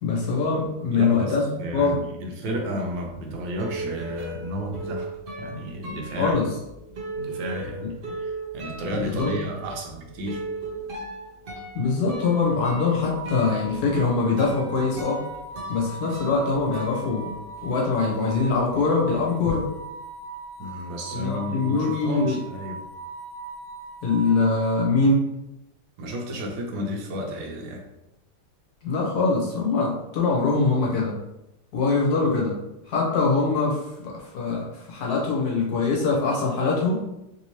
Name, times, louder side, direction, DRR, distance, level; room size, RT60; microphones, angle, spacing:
voice 1, 0.0-1.4 1.7-2.0 6.2-6.5 9.0-9.3 11.7-15.2 15.7-17.3 17.6-19.7 21.1-22.4 24.0-25.3 28.8-31.2 31.7-32.6 32.9-37.0, left 4 dB, 65° left, -3 dB, 1.2 m, -23 dB
voice 2, 0.9-6.4 7.2-10.4 20.6-22.8 26.0-27.9, equal, 85° right, 1 dB, 1.4 m, -32 dB
sound 1, 3.0-17.8 18.1-19.6, right 2 dB, 70° right, 0.5 m, -37 dB
sound 2, 12.2-24.8, right 3 dB, 45° right, 1.1 m, -39 dB
3.4 x 2.8 x 2.9 m, 0.90 s
omnidirectional pair, 1.9 m